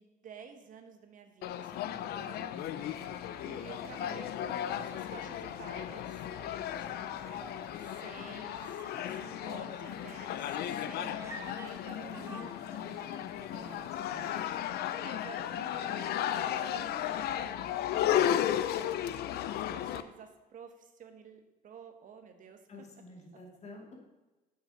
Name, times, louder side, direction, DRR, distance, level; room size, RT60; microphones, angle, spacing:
voice 1, 0.0-2.5 3.4-7.3 7.8-12.3 13.5-19.0 19.7-22.7, right 6 dB, 50° right, 6 dB, 1.2 m, -52 dB
sound 1, 1.4-20.0, left 10 dB, 70° left, 0.6 m, -35 dB
sound 2, 2.7-14.5, right 1 dB, 15° right, 1.8 m, -52 dB
voice 2, 12.1-12.5 12.8-13.0 13.5-14.3 22.7-23.9, left 1 dB, 40° left, 0 dB, 2.6 m, -50 dB
7.4 x 6.4 x 7.1 m, 1.1 s
cardioid pair, 110°, 17 cm